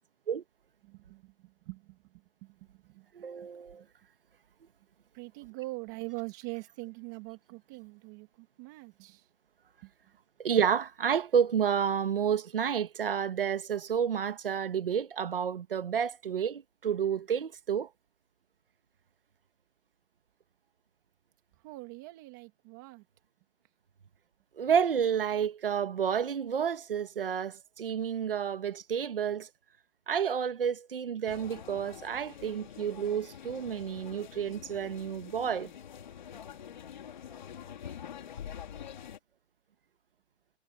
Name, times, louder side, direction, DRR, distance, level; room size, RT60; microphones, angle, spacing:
voice 1, 0.8-3.1 3.8-3.9 5.1-9.3 9.8-9.9 21.6-23.1, right 25 dB, 15° right, 2.6 m, -43 dB
voice 2, 3.1-3.8 10.4-17.9 24.6-29.5 30.1-35.7, right 8 dB, 55° right, 1.6 m, -30 dB
sound 1, 31.3-39.2, left 9 dB, 40° left, 3.0 m, -46 dB
hypercardioid pair, 175°, 34 cm